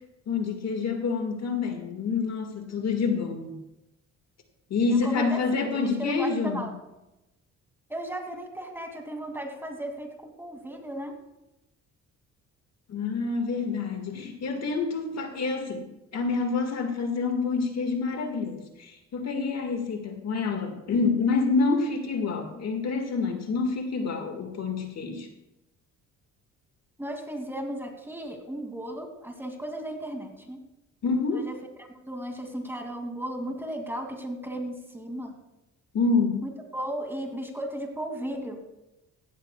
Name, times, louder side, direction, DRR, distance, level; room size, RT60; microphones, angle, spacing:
voice 1, 0.3-3.6 4.7-6.6 12.9-25.3 31.0-31.4 35.9-36.4, left 4 dB, 60° left, 4 dB, 1.9 m, -27 dB
voice 2, 4.9-6.7 7.9-11.2 27.0-30.6 31.3-31.5 31.8-35.3 36.4-38.6, right 1 dB, 5° right, 2 dB, 2.5 m, -35 dB
16.5 x 14.0 x 2.3 m, 0.94 s
cardioid pair, 90°, 30 cm